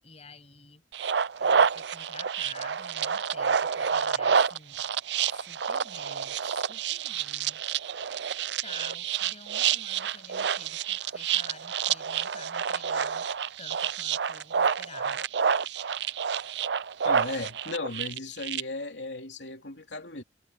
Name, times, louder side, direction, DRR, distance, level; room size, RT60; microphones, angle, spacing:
voice 1, 0.0-0.8 1.4-4.8 5.3-7.6 8.6-13.3 13.6-15.2, left 4 dB, 35° left, 7.7 m, -50 dB
sound 1, 0.9-18.6, right 7 dB, 65° right, 0.5 m, -28 dB
voice 2, 17.0-20.2, left 2 dB, 70° left, 3.2 m, -36 dB
head